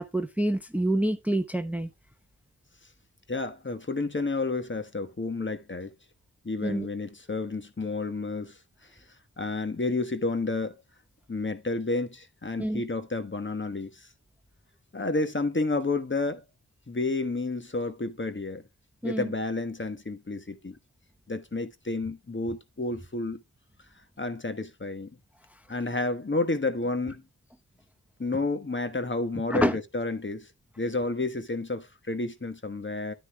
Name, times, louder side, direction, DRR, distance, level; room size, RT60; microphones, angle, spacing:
voice 1, 0.0-1.9 6.6-6.9 12.6-12.8 19.0-19.3 29.5-29.8, right 1 dB, 5° right, 0.8 m, -27 dB
voice 2, 3.3-5.9 6.4-8.6 9.4-10.8 11.3-14.1 14.9-16.4 16.9-18.6 19.0-20.8 21.3-23.4 24.2-25.1 25.7-27.2 28.2-30.5 30.8-33.1, left 3 dB, 30° left, 1.3 m, -30 dB
10.0 x 9.6 x 2.2 m
cardioid pair, 55°, 40 cm